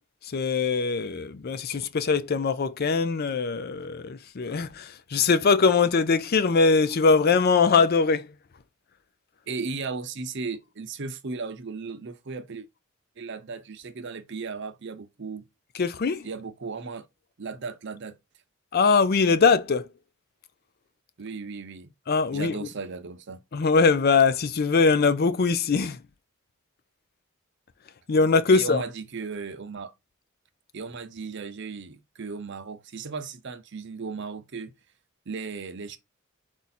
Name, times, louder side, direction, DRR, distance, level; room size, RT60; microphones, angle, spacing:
voice 1, 0.2-8.3 15.7-16.3 18.7-19.9 22.1-22.7 23.5-26.0 28.1-28.8, left 4 dB, 50° left, 0.5 m, -22 dB
voice 2, 9.5-12.7 13.2-15.4 16.2-17.1 17.4-18.1 21.2-21.9 22.3-23.4 28.5-29.9 30.7-34.7 35.3-36.0, right 4 dB, 55° right, 0.6 m, -36 dB
4.7 x 2.7 x 4.1 m
head